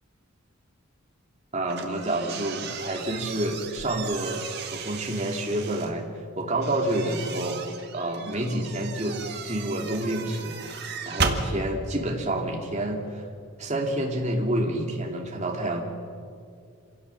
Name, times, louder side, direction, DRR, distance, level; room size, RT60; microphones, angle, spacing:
voice 1, 1.5-4.5 4.7-6.0 6.4-7.7 7.9-9.2 9.4-10.6 11.1-13.3 13.6-15.8, right 1 dB, 30° right, 0 dB, 2.6 m, -28 dB
sound 1, 1.7-5.9 6.6-11.4, right 5 dB, 50° right, 1.9 m, -35 dB
26.5 x 17.0 x 7.0 m, 2.3 s
head